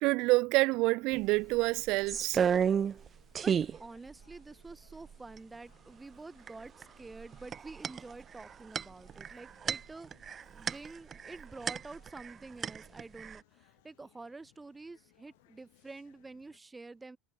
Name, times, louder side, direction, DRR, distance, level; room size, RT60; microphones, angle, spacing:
voice 1, 0.0-2.4, right 23 dB, 60° right, 0.5 m, -27 dB
sound 1, 0.7-16.6, left 25 dB, 80° left, 7.6 m, -68 dB
sound 2, 1.1-1.2 1.5-3.1 3.3-3.8 4.3-4.4 4.7-5.4 6.5-6.8 7.1-12.3 12.6-13.4, right 7 dB, 30° right, 0.9 m, -32 dB
voice 2, 3.8-10.1 10.5-17.2, right 3 dB, 10° right, 4.2 m, -48 dB
supercardioid pair, 135°, 0 cm